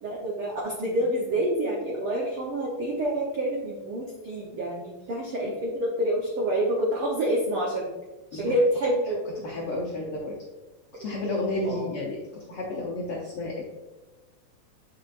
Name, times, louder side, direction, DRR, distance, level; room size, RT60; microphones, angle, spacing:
voice 1, 0.0-7.9 8.3-9.3 11.0-11.2 11.6-11.9, right 1 dB, 75° right, -3 dB, 1.2 m, -27 dB
voice 2, 9.4-10.4 11.0-13.6, left 2 dB, 70° left, -4 dB, 1.4 m, -31 dB
7.5 x 5.1 x 2.5 m, 1.2 s
omnidirectional pair, 3.7 m